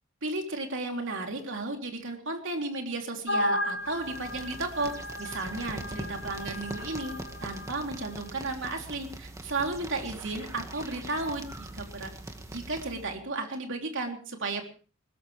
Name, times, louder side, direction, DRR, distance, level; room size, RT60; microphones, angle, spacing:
voice 1, 0.2-7.1 7.4-12.1 12.5-14.7, right 2 dB, 65° right, 3 dB, 3.4 m, -34 dB
sound 1, 3.3-7.7, left 1 dB, 65° left, 1.7 m, -34 dB
sound 2, 3.8-13.2, right 1 dB, 15° right, 2.0 m, -42 dB
21.5 x 19.5 x 3.4 m, 0.38 s
head